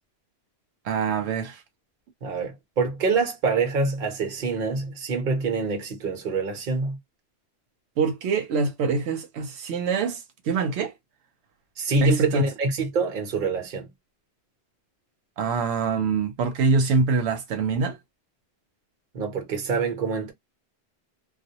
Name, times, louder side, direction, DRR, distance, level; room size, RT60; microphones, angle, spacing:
voice 1, 0.9-1.6 8.0-10.2 10.5-10.9 12.0-12.4 15.4-18.0, right 4 dB, 85° right, 0.9 m, -24 dB
voice 2, 2.2-7.0 11.8-13.9 19.1-20.3, right 4 dB, 55° right, 0.9 m, -26 dB
2.2 x 2.0 x 2.7 m
omnidirectional pair, 1.1 m